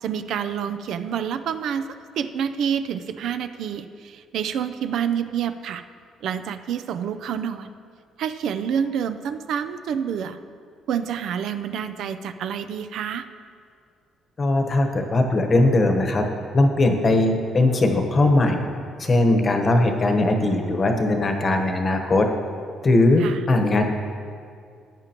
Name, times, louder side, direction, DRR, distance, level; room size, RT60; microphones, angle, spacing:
voice 1, 0.0-1.9 2.2-5.8 6.2-7.7 8.2-10.4 10.9-13.3 23.2-23.4, right 8 dB, 70° right, 10 dB, 0.4 m, -28 dB
voice 2, 14.4-16.2 16.5-18.7 19.0-22.3 22.8-23.8, left 2 dB, 30° left, 5 dB, 1.1 m, -19 dB
15.0 x 9.1 x 3.0 m, 2.2 s
cardioid pair, 125°, 0 cm